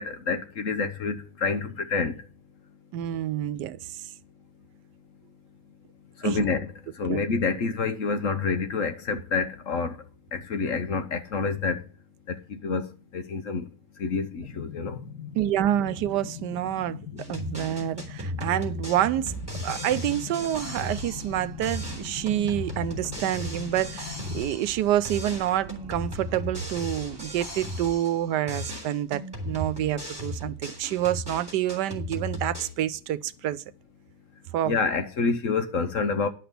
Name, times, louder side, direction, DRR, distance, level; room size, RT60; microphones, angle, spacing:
voice 1, 0.0-2.3 6.2-10.0 10.3-11.8 12.3-13.7 14.0-15.0 34.6-36.3, left 4 dB, 55° left, 1.3 m, -28 dB
voice 2, 2.9-3.8 6.2-6.4 7.1-7.2 15.4-17.0 17.3-19.3 19.6-33.6 34.5-34.8, right 12 dB, 85° right, 1.3 m, -28 dB
sound 1, 14.4-24.4, left 7 dB, 75° left, 2.0 m, -41 dB
sound 2, 17.2-21.4 21.6-24.8 25.0-28.2 28.5-32.7, left 1 dB, 15° right, 3.5 m, -36 dB
sound 3, 20.5-28.0, right 5 dB, 40° right, 1.2 m, -45 dB
11.0 x 6.0 x 6.9 m
omnidirectional pair, 1.8 m